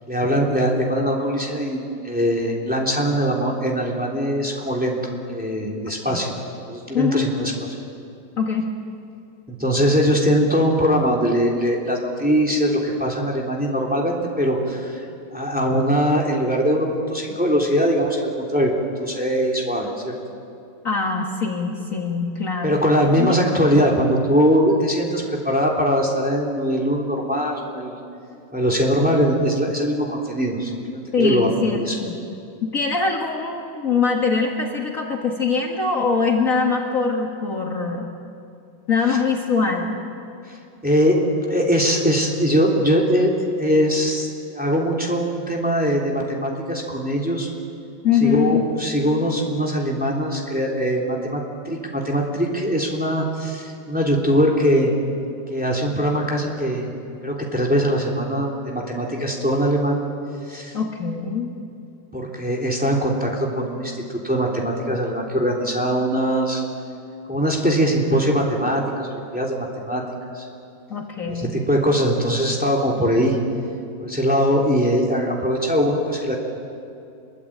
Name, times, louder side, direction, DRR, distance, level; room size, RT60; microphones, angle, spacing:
voice 1, 0.1-5.0 5.3-6.3 6.6-7.5 9.5-15.0 15.3-20.1 22.6-28.0 28.5-31.9 39.1-39.2 40.8-43.3 43.6-47.5 48.2-55.0 55.5-56.9 57.2-60.0 60.5-60.7 62.1-66.6 67.3-70.0 70.3-70.4 71.3-73.4 74.0-76.4, equal, 5° right, -2 dB, 3.3 m, -21 dB
voice 2, 6.9-7.4 8.4-8.7 20.8-22.8 23.2-23.3 31.1-32.1 32.6-38.1 38.9-40.0 48.0-48.7 60.7-61.5 70.9-71.5, left 5 dB, 45° left, 0 dB, 2.2 m, -23 dB
27.0 x 22.5 x 8.7 m, 2.6 s
omnidirectional pair, 2.0 m